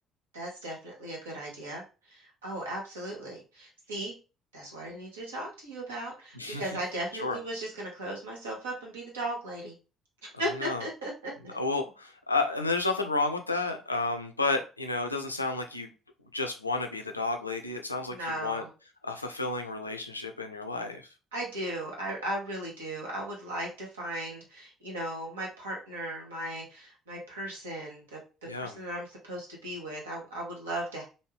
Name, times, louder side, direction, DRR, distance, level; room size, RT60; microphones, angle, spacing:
voice 1, 0.3-1.8 2.1-4.1 4.5-9.7 10.4-11.3 18.1-18.7 21.3-28.2 28.6-31.0, right 1 dB, 75° right, -2 dB, 1.1 m, -37 dB
voice 2, 6.4-6.7 7.2-7.4 10.4-10.8 11.4-15.9 16.3-18.6 19.0-21.1 28.5-28.7, left 3 dB, 85° left, 5 dB, 0.4 m, -31 dB
3.2 x 2.6 x 3.1 m, 0.31 s
figure-of-eight pair, 50°, 0 cm